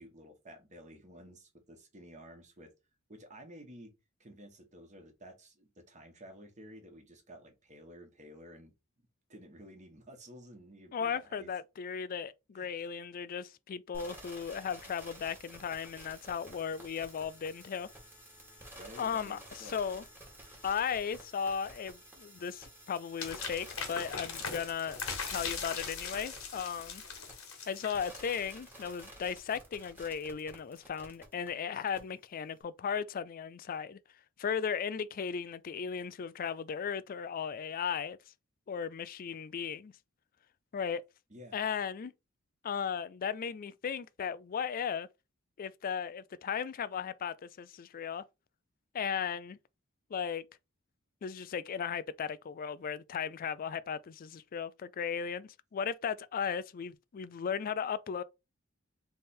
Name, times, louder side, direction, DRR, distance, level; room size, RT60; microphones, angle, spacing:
voice 1, 0.0-2.7 3.1-3.9 4.2-8.7 9.3-11.5 12.5-12.7 16.5-16.6 18.7-19.8 41.3-41.7, equal, 35° right, 1.3 m, -52 dB
voice 2, 10.9-17.9 19.0-20.0 20.6-25.0 25.3-27.0 27.7-34.0 34.4-38.2 38.7-39.9 40.7-41.0 41.5-42.1 42.6-45.1 45.6-48.2 48.9-49.6 50.1-50.4 51.2-58.2, left 7 dB, 40° left, 0.3 m, -36 dB
sound 1, 13.9-31.5 31.9-32.0, right 1 dB, 10° right, 1.4 m, -52 dB
sound 2, 23.2-28.7, left 5 dB, 85° left, 1.5 m, -40 dB
3.4 x 3.3 x 4.2 m
head